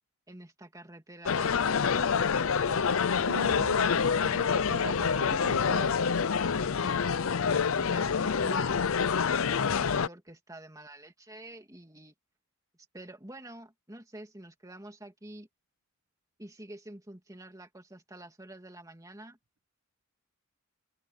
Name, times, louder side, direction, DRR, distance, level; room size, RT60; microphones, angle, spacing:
voice 1, 0.3-2.3 2.7-3.6 6.8-7.1 7.3-8.9 9.4-12.1 12.9-15.5 16.4-19.4, right 1 dB, 15° right, 2.9 m, -48 dB
sound 1, 1.3-10.1, left 6 dB, 70° left, 0.6 m, -27 dB
voice 2, 3.3-6.0, right 3 dB, 75° right, 1.1 m, -40 dB
head